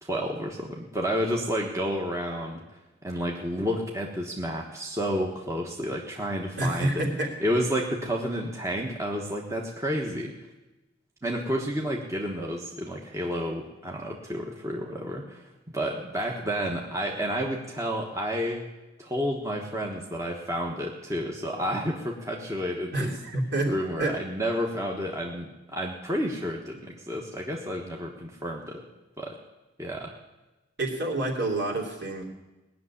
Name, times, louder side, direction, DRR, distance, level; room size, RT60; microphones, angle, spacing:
voice 1, 0.0-2.6 3.0-7.1 7.4-10.3 11.2-18.6 19.0-23.1 23.7-28.9 29.2-29.4 29.8-30.1, equal, 15° right, -1 dB, 1.3 m, -30 dB
voice 2, 6.6-7.3 22.9-23.7 24.0-24.2 30.8-32.2, right 2 dB, 60° right, 0 dB, 3.1 m, -28 dB
19.0 x 6.8 x 9.9 m, 1.1 s
head